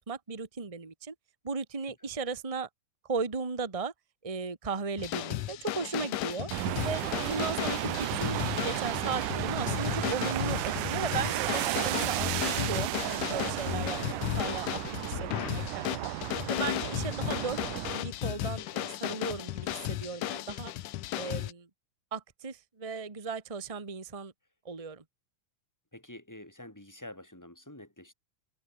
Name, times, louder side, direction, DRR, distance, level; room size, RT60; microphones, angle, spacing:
voice 1, 0.1-1.1 1.4-2.7 3.1-3.9 4.2-6.5 6.8-15.1 15.5-16.1 16.5-17.6 17.9-20.7 21.2-21.7 22.1-24.3 24.6-25.0, right 5 dB, 55° right, 0.4 m, -36 dB
sound 1, 5.0-21.5, left 14 dB, 85° left, 2.5 m, -35 dB
sound 2, 6.5-18.0, right 16 dB, 80° right, 2.3 m, -33 dB
voice 2, 13.9-14.4 15.1-15.4 25.9-28.1, left 1 dB, 5° left, 5.8 m, -48 dB
omnidirectional pair, 3.6 m